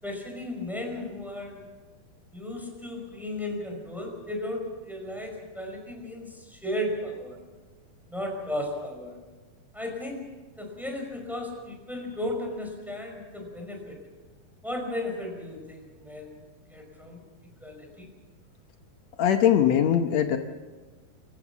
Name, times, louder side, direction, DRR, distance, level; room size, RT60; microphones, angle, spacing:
voice 1, 0.0-1.6 2.3-7.4 8.1-9.2 9.7-10.2 10.6-14.0 14.6-16.3 16.7-17.2 17.6-18.1, left 1 dB, ahead, 2 dB, 5.0 m, -35 dB
voice 2, 19.2-20.4, left 9 dB, 85° left, 6 dB, 1.5 m, -21 dB
26.5 x 15.0 x 7.2 m, 1.3 s
omnidirectional pair, 4.5 m